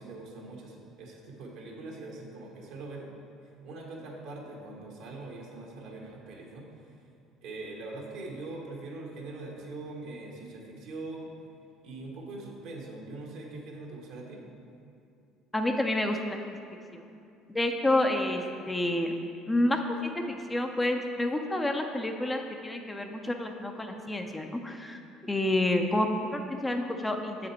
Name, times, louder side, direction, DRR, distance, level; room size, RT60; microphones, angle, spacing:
voice 1, 0.0-3.1 3.6-7.1 7.4-11.3 11.8-14.4, right 2 dB, 70° right, -1 dB, 1.4 m, -42 dB
voice 2, 15.5-16.4 16.9-17.0 17.5-19.1 19.5-27.5, left 1 dB, 15° left, 4 dB, 0.5 m, -29 dB
7.2 x 5.1 x 4.3 m, 2.5 s
supercardioid pair, 90°, 0 cm